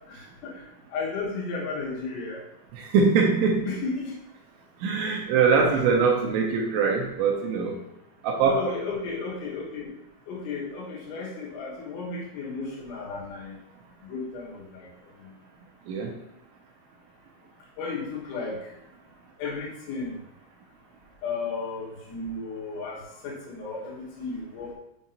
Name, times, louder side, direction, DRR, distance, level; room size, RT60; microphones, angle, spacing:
voice 1, 0.1-0.6 0.9-2.4 3.7-4.2 5.7-5.8 8.4-9.9 10.3-13.6 14.0-14.9 17.8-18.6 19.4-20.2 21.2-23.0 23.2-24.7, left 4 dB, 75° left, -4 dB, 3.6 m, -34 dB
voice 2, 2.8-3.6 4.8-7.8 8.2-8.6 15.9-16.1, right 5 dB, 80° right, 0 dB, 3.0 m, -22 dB
7.2 x 6.4 x 2.7 m, 0.84 s
omnidirectional pair, 5.9 m